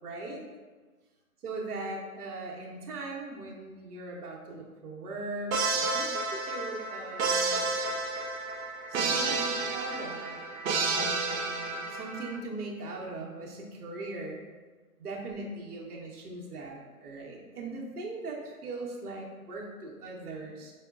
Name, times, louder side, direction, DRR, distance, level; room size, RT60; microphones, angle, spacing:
voice 1, 0.0-0.4 1.4-8.0 8.9-10.4 10.8-14.4 15.0-20.7, right 2 dB, 90° right, -1 dB, 1.0 m, -40 dB
sound 1, 5.5-12.4, right 3 dB, 70° right, 0.6 m, -31 dB
5.4 x 2.1 x 2.4 m, 1.3 s
hypercardioid pair, 165°, 44 cm